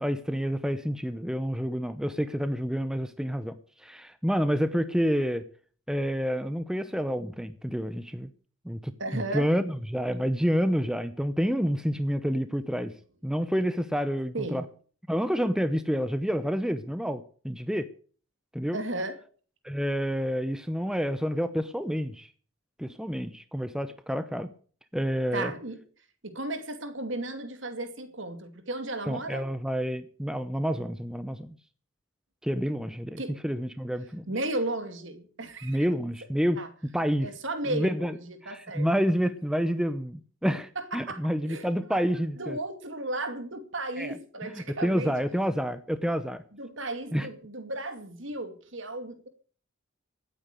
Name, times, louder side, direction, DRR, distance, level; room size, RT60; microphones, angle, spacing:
voice 1, 0.0-5.4 5.9-8.3 8.6-12.9 13.2-14.6 15.1-17.9 18.5-18.8 19.6-22.3 22.8-24.5 24.9-25.5 29.1-31.6 32.4-34.2 35.6-36.6 36.9-37.3 37.7-38.2 38.4-42.6 44.0-44.1 44.5-46.4 47.1-47.3, equal, 5° right, 11 dB, 0.7 m, -28 dB
voice 2, 9.0-9.5 14.3-14.6 18.7-19.2 25.3-25.8 26.2-29.4 33.2-33.4 34.3-35.8 36.6-36.7 37.2-38.9 40.8-41.2 41.5-42.0 42.4-45.1 46.5-49.3, right 2 dB, 60° right, 8 dB, 2.4 m, -34 dB
16.5 x 9.2 x 6.6 m, 0.44 s
head